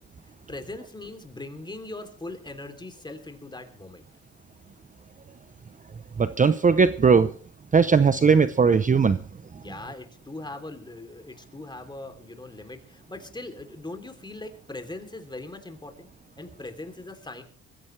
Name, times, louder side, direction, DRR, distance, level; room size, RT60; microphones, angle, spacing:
voice 1, 0.5-4.0 9.6-16.1 16.4-17.4, left 2 dB, 15° left, 7 dB, 3.2 m, -40 dB
voice 2, 6.2-7.3 7.7-9.2, right 5 dB, 25° right, 13 dB, 0.7 m, -19 dB
22.0 x 15.5 x 3.3 m, 0.42 s
cardioid pair, 90°, 30 cm